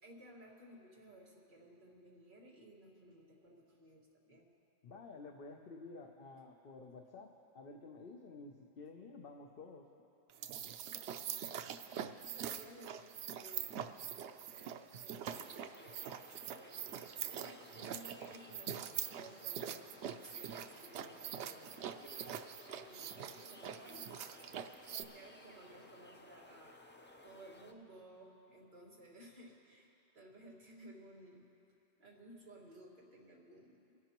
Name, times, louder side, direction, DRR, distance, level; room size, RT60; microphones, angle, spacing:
voice 1, 0.0-4.5 11.1-11.7 12.2-16.1 16.5-17.0 17.3-18.8 19.1-22.1 22.7-24.3 25.0-26.8 27.2-31.5 32.0-34.0, right 1 dB, 50° right, -5 dB, 2.2 m, -57 dB
voice 2, 4.8-9.9, left 3 dB, 60° left, 2 dB, 0.9 m, -52 dB
sound 1, 10.3-25.0, right 9 dB, 90° right, 0.9 m, -44 dB
sound 2, 15.3-27.7, left 1 dB, 15° left, 0.5 m, -58 dB
24.5 x 12.5 x 3.0 m, 2.7 s
omnidirectional pair, 1.1 m